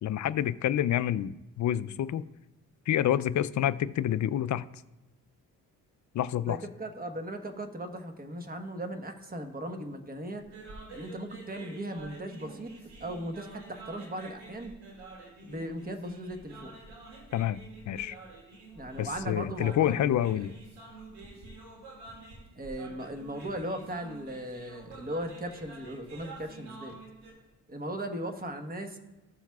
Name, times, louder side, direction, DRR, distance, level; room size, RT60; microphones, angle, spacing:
voice 1, 0.0-2.2 2.9-4.6 6.1-6.6 17.3-17.6 17.9-18.2 19.0-20.5, left 11 dB, 50° left, 16 dB, 0.4 m, -28 dB
voice 2, 6.5-10.4 10.9-12.7 13.0-14.7 15.4-16.7 18.7-20.4 22.5-26.9 27.7-29.0, right 1 dB, 25° right, 6 dB, 1.2 m, -38 dB
sound 1, 10.4-27.3, right 2 dB, 90° right, 2.4 m, -48 dB
14.5 x 7.1 x 2.4 m, 0.99 s
supercardioid pair, 60°, 38 cm